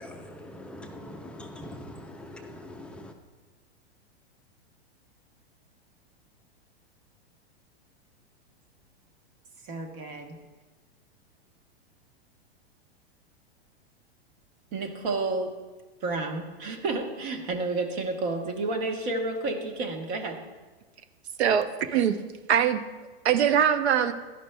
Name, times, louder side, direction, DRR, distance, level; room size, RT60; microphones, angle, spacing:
voice 1, 0.0-3.1, left 1 dB, 5° left, 3 dB, 0.4 m, -42 dB
voice 2, 9.6-10.4 14.7-15.5 16.0-20.4, right 3 dB, 55° right, 3 dB, 1.2 m, -30 dB
voice 3, 21.4-22.2 22.5-22.8 23.2-24.1, right 8 dB, 85° right, 10 dB, 0.7 m, -22 dB
12.0 x 5.2 x 2.2 m, 1.2 s
hypercardioid pair, 125°, 32 cm